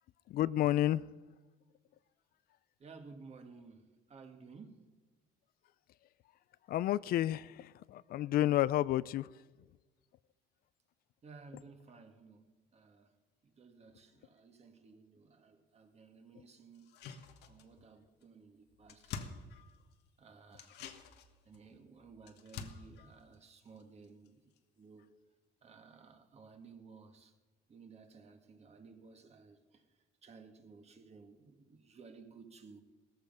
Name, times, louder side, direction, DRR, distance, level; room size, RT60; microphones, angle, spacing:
voice 1, 0.3-1.0 6.7-9.3, left 13 dB, 60° left, 0.4 m, -30 dB
voice 2, 2.8-4.9 11.2-12.5 12.7-13.2 13.4-17.0 17.5-19.4 20.2-20.8 21.5-24.5 24.8-25.1 25.6-27.3 27.7-29.9 30.2-32.8, right 4 dB, 40° right, 1.9 m, -56 dB
sound 1, 16.8-17.9 18.2-18.3 18.6-20.1 20.5-24.3 24.6-24.7, left 6 dB, 80° left, 1.5 m, -49 dB
17.5 x 14.5 x 5.5 m
cardioid pair, 110°, 17 cm